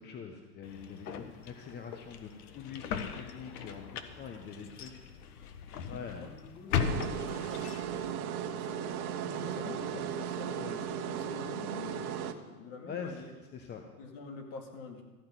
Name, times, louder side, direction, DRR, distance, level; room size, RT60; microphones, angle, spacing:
voice 1, 0.0-5.0 5.9-6.3 12.8-13.3 13.5-13.8, left 6 dB, 20° left, 4 dB, 1.0 m, -44 dB
sound 1, 0.6-8.1, left 7 dB, 65° left, 1.3 m, -38 dB
voice 2, 2.7-3.3 6.1-7.6 8.5-13.3 14.0-15.0, left 4 dB, 45° left, 2 dB, 2.7 m, -46 dB
sound 2, 6.8-12.3, right 9 dB, 60° right, 1.2 m, -36 dB
14.5 x 5.8 x 9.0 m, 1.2 s
hypercardioid pair, 115°, 48 cm